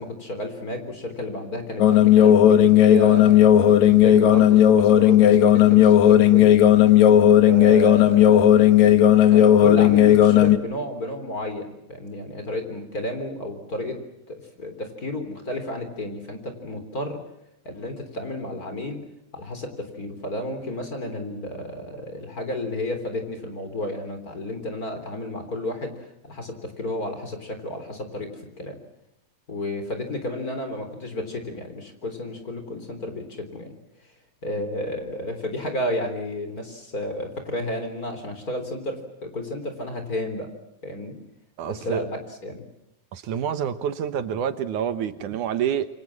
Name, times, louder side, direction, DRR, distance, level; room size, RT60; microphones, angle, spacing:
voice 1, 0.0-3.5 3.8-6.5 7.5-8.8 9.3-14.0 14.3-17.2 17.6-19.0 19.3-28.8 29.5-33.7 34.4-40.5 40.8-41.2 41.7-42.7, left 1 dB, 25° left, 7 dB, 3.9 m, -32 dB
sound 1, 1.8-10.6, left 10 dB, 65° left, 2.5 m, -14 dB
voice 2, 41.6-42.0 43.1-45.9, right 8 dB, 75° right, 11 dB, 2.6 m, -27 dB
28.0 x 24.5 x 7.4 m, 0.86 s
omnidirectional pair, 3.7 m